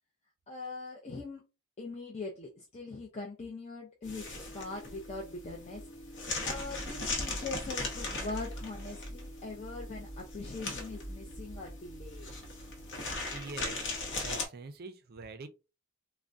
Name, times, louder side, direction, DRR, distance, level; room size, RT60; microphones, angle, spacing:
voice 1, 0.5-1.5 1.8-5.8 6.5-12.3, left 3 dB, 30° left, 0.5 m, -42 dB
sound 1, 4.0-14.5, left 2 dB, 55° left, 0.8 m, -39 dB
voice 2, 13.0-13.9 14.2-15.5, right 3 dB, 45° right, 0.4 m, -45 dB
3.5 x 2.1 x 2.5 m
head